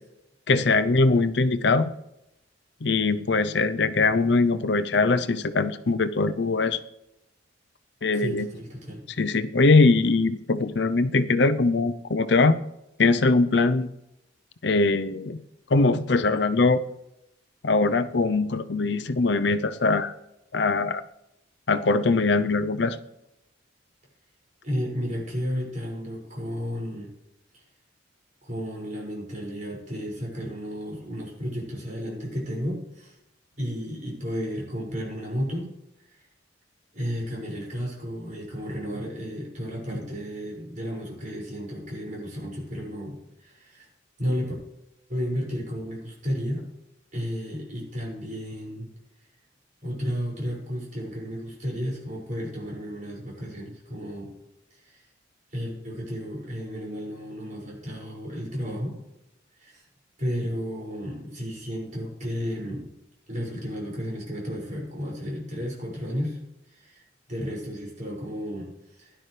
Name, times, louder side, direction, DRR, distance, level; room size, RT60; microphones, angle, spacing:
voice 1, 0.5-1.9 2.8-6.8 8.0-8.5 9.2-12.6 13.0-13.9 14.6-15.4 15.7-16.8 17.6-20.1 20.5-21.0 21.7-23.0, left 3 dB, 65° left, 11 dB, 0.7 m, -22 dB
voice 2, 8.1-9.0 24.6-27.1 27.5-27.6 28.4-33.2 33.6-35.7 36.1-36.2 36.9-43.9 44.2-44.5 45.1-46.6 47.1-48.9 49.8-54.3 54.7-55.0 55.5-59.0 59.6-59.8 60.2-62.9 63.3-66.4 66.7-69.1, equal, 40° right, -3 dB, 6.1 m, -33 dB
16.5 x 11.5 x 3.4 m, 0.86 s
head